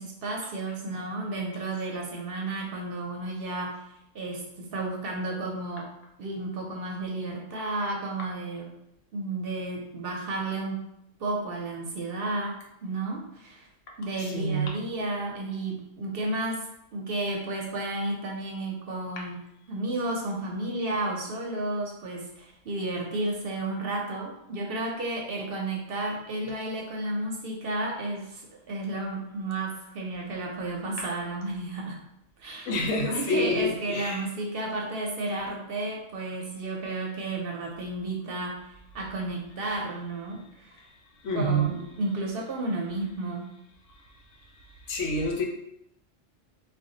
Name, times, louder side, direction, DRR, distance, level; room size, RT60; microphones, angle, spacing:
voice 1, 0.0-3.8 4.1-5.9 6.2-8.7 9.1-10.9 11.2-13.7 14.0-16.7 16.9-19.4 19.7-32.0 32.4-32.8 33.1-38.6 38.9-40.8 41.3-43.5, right 2 dB, 60° right, 0 dB, 0.7 m, -32 dB
voice 2, 14.3-14.8 32.7-34.2 41.2-41.7 44.9-45.4, equal, 80° left, 1 dB, 1.0 m, -27 dB
2.6 x 2.2 x 3.7 m, 0.81 s
omnidirectional pair, 1.2 m